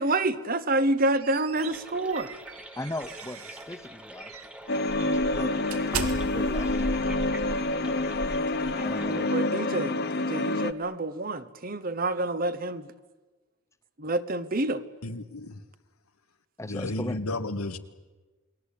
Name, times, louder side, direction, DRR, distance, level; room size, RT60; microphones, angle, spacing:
voice 1, 0.0-2.3 8.7-12.9 14.0-14.8, right 2 dB, 40° right, 13 dB, 1.1 m, -28 dB
sound 1, 0.8-3.7 4.2-4.5 4.9-9.1, right 3 dB, 85° right, 2.1 m, -37 dB
sound 2, 1.5-9.4, right 1 dB, 5° right, 1.3 m, -46 dB
voice 2, 2.8-4.4 5.1-5.6 6.0-7.0 7.9-8.0 8.8-9.3 16.6-17.2, left 1 dB, 15° left, 12 dB, 0.7 m, -38 dB
sound 3, 4.7-10.7, left 2 dB, 50° left, 1.0 m, -27 dB
voice 3, 15.0-15.6 16.7-17.8, left 2 dB, 85° left, 9 dB, 1.6 m, -32 dB
29.0 x 20.5 x 8.6 m, 1.3 s
head